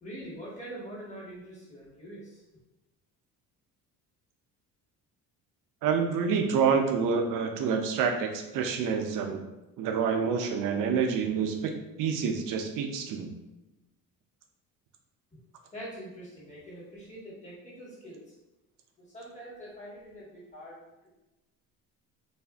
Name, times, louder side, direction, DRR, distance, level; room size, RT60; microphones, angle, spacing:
voice 1, 0.0-2.4 15.3-15.4 15.7-18.3 19.0-20.8, equal, 20° left, -7 dB, 1.1 m, -44 dB
voice 2, 5.8-9.4 9.8-11.7 12.0-13.3, right 6 dB, 60° right, 3 dB, 0.5 m, -27 dB
2.6 x 2.4 x 2.3 m, 1.0 s
cardioid pair, 90°, 37 cm